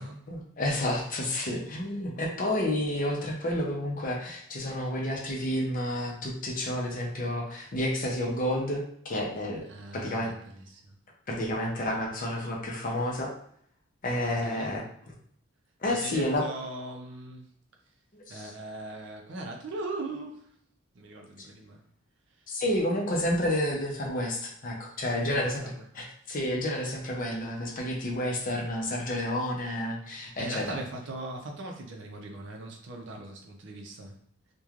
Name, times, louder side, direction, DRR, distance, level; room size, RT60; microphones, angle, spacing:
voice 1, 0.3-9.7 9.9-10.3 11.3-13.3 14.0-14.8 15.8-16.5 18.1-18.5 22.5-25.6 25.9-30.6, left 1 dB, 40° left, -1 dB, 0.5 m, -30 dB
voice 2, 9.7-11.0 14.4-14.7 15.9-17.5 18.3-20.5 20.9-21.8 25.1-25.8 30.4-34.2, right 2 dB, 55° right, 1 dB, 0.5 m, -40 dB
3.0 x 2.2 x 2.4 m, 0.65 s
head